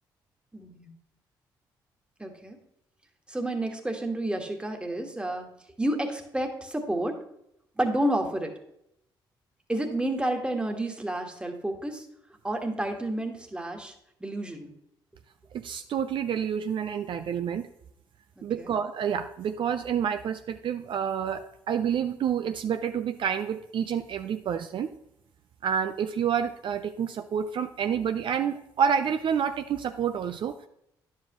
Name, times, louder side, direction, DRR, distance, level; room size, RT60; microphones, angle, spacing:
voice 1, 0.5-0.9 2.2-2.6 3.3-5.5 5.8-7.2 7.8-8.5 9.7-12.0 12.4-13.9 14.2-14.7 18.4-18.7, right 1 dB, 10° right, 3 dB, 1.6 m, -30 dB
voice 2, 15.5-17.7 18.4-24.9 25.6-30.7, right 8 dB, 60° right, 8 dB, 0.5 m, -28 dB
10.0 x 7.4 x 3.0 m, 0.78 s
supercardioid pair, 65°, 10 cm